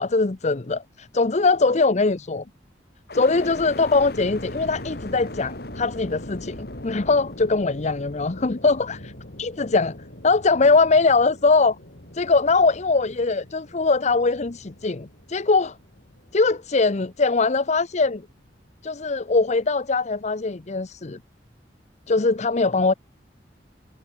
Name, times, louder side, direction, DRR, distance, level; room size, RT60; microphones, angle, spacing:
voice 1, 0.0-2.4 3.1-9.1 9.4-10.0 10.2-11.8 12.1-15.8 16.3-18.2 18.8-21.2 22.1-22.9, left 3 dB, 40° left, 0.8 m, -21 dB
sound 1, 3.1-17.1 17.6-18.3, left 1 dB, 60° left, 4.1 m, -40 dB
head